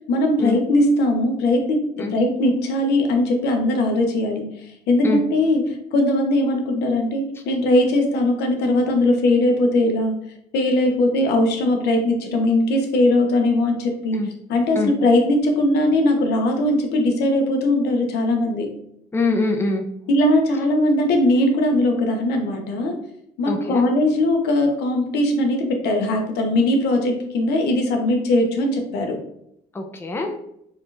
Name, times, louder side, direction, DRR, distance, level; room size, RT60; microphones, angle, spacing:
voice 1, 0.1-4.4 4.9-5.6 5.9-10.1 10.5-14.2 14.5-18.7 20.1-22.9 23.4-29.2, left 1 dB, 80° left, 3 dB, 0.9 m, -20 dB
voice 2, 19.1-19.9 23.5-23.8 29.7-30.3, left 3 dB, 15° left, 3 dB, 0.5 m, -23 dB
4.3 x 2.5 x 3.3 m, 0.75 s
cardioid pair, 110°, 17 cm